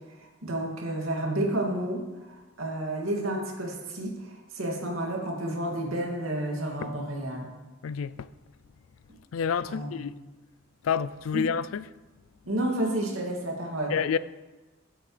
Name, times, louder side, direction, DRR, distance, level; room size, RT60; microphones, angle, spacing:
voice 1, 0.1-7.5 9.7-10.0 11.3-11.4 12.5-13.9, right 1 dB, 80° right, 2.4 m, -31 dB
voice 2, 7.8-8.3 9.3-10.2 10.8-11.9 13.9-14.2, left 7 dB, 85° left, 0.4 m, -28 dB
15.5 x 7.9 x 3.3 m
head